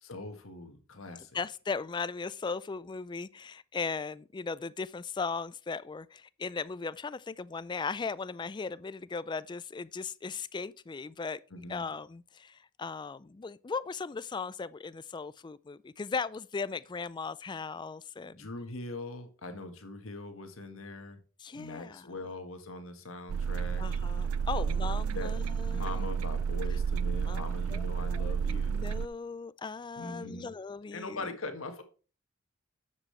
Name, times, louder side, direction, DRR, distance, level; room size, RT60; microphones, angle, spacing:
voice 1, 0.0-1.4 11.5-11.9 18.3-21.2 21.5-23.8 24.6-25.3 25.7-28.8 30.0-30.5 30.9-31.8, left 2 dB, 70° left, 1.6 m, -42 dB
voice 2, 1.3-11.4 11.7-18.5 21.4-22.1 23.8-26.0 27.3-27.4 27.7-31.2, left 4 dB, 20° left, 0.3 m, -38 dB
sound 1, 23.3-29.1, right 6 dB, 85° right, 0.4 m, -31 dB
9.9 x 7.5 x 3.2 m
head